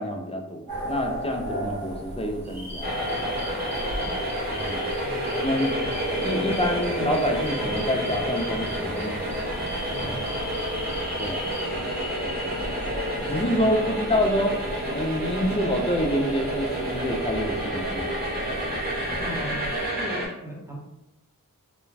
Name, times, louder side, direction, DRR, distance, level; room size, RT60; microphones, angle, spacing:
voice 1, 0.0-3.0 4.5-4.8 5.3-5.7 6.2-9.3 9.9-10.2 11.2-11.5 13.2-14.6 14.9-18.1, equal, 20° left, 2 dB, 0.4 m, -27 dB
sound 1, 0.7-19.9, equal, 90° right, 1.3 m, -39 dB
sound 2, 2.4-11.6, left 1 dB, 50° right, 0.7 m, -39 dB
sound 3, 2.8-20.3, equal, 25° right, 1.3 m, -29 dB
voice 2, 5.0-6.3 10.0-10.4 11.7-11.8 15.5-15.6 19.2-20.8, right 1 dB, 10° right, -2 dB, 0.8 m, -39 dB
2.3 x 2.2 x 3.3 m, 0.90 s
wide cardioid pair, 40°, 34 cm